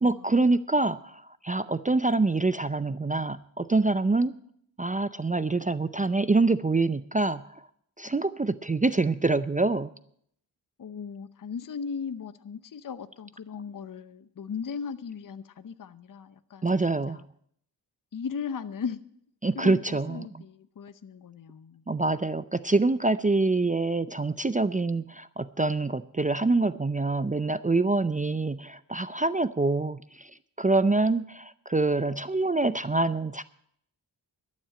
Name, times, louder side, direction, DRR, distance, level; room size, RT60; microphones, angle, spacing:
voice 1, 0.0-4.3 4.8-7.6 8.0-9.9 16.6-17.2 19.4-20.2 21.9-30.3 30.6-33.4, right 3 dB, 20° right, 14 dB, 0.5 m, -25 dB
voice 2, 10.8-17.2 18.1-19.0 19.5-21.8, left 6 dB, 45° left, 13 dB, 0.7 m, -37 dB
12.0 x 7.5 x 9.0 m, 0.68 s
cardioid pair, 50°, 45 cm